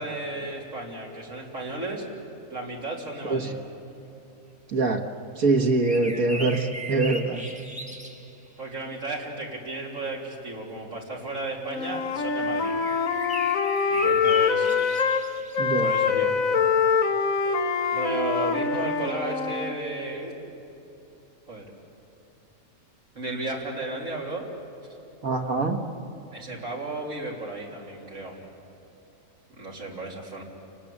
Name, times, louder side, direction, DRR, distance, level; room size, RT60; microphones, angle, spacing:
voice 1, 0.0-2.1 2.5-3.6 8.6-12.8 13.9-14.7 15.6-16.4 17.9-20.3 21.5-21.7 23.1-24.5 26.3-28.5 29.5-30.4, right 2 dB, 65° right, -3 dB, 4.2 m, -34 dB
voice 2, 4.7-5.0 5.4-7.4 15.6-15.9 25.2-25.8, right 3 dB, 90° right, 3 dB, 2.1 m, -24 dB
sound 1, 5.8-8.4 12.6-15.8, right 1 dB, 5° right, 1.6 m, -38 dB
Wind instrument woodwind instrument, 11.7-15.2 15.5-19.8, left 5 dB, 75° left, 1.5 m, -24 dB
30.0 x 19.5 x 8.6 m, 3.0 s
omnidirectional pair, 1.4 m